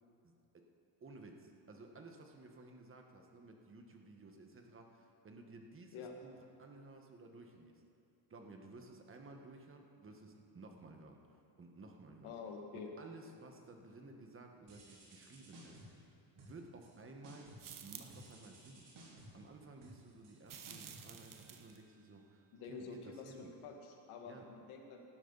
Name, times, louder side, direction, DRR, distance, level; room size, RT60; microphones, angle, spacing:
voice 1, 0.2-0.6 1.0-7.8 8.3-12.3 12.7-17.5 17.8-18.9 19.3-23.5 24.2-24.5, right 2 dB, 25° right, 3 dB, 1.4 m, -55 dB
voice 2, 12.2-12.9 22.5-25.0, left 5 dB, 85° left, 2 dB, 2.0 m, -48 dB
sound 1, 14.7-16.0 16.4-17.0 17.2-17.7 18.1-22.1, right 1 dB, 60° right, 4.0 m, -58 dB
sound 2, 17.6-18.3 20.5-21.8, right 8 dB, 40° right, 1.1 m, -51 dB
18.0 x 12.5 x 4.1 m, 2.7 s
cardioid pair, 130°, 48 cm